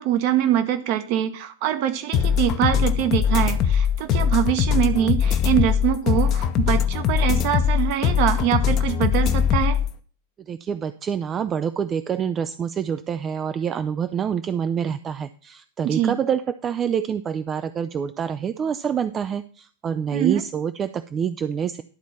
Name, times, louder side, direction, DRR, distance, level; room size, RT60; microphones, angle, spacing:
voice 1, 0.0-9.8 15.8-16.2 20.1-20.4, right 11 dB, 45° right, 9 dB, 1.0 m, -23 dB
sound 1, 2.1-9.9, left 8 dB, 35° left, 0.7 m, -21 dB
voice 2, 10.4-21.8, right 7 dB, 25° right, 12 dB, 0.4 m, -26 dB
11.0 x 4.1 x 7.1 m, 0.43 s
figure-of-eight pair, 90°, 0 cm